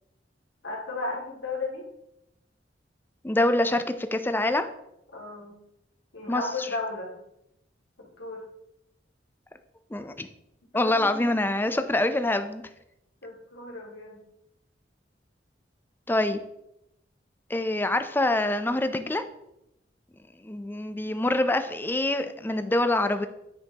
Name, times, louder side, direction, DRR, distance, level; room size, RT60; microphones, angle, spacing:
voice 1, 0.6-1.9 5.1-5.6 6.1-7.2 8.0-8.4 10.7-11.4 13.2-14.2, left 3 dB, 90° left, -3 dB, 2.3 m, -35 dB
voice 2, 3.2-4.7 6.3-6.7 9.9-10.3 10.7-12.6 16.1-16.4 17.5-19.2 20.4-23.3, left 1 dB, 10° left, 9 dB, 0.4 m, -25 dB
9.7 x 5.6 x 2.9 m, 0.83 s
head